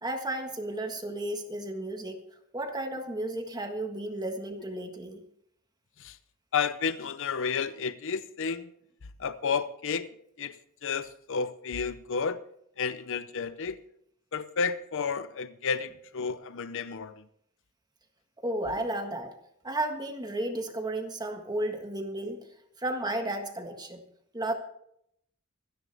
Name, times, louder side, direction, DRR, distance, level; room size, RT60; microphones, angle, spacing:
voice 1, 0.0-2.2 2.5-5.2 18.4-19.3 19.6-22.4 22.8-24.0 24.3-24.5, right 1 dB, 20° right, 1.6 m, -33 dB
voice 2, 6.5-8.7 9.2-10.1 10.4-10.5 10.8-12.4 12.8-13.8 14.3-17.1, left 6 dB, 65° left, 0.6 m, -31 dB
26.5 x 10.0 x 3.5 m
head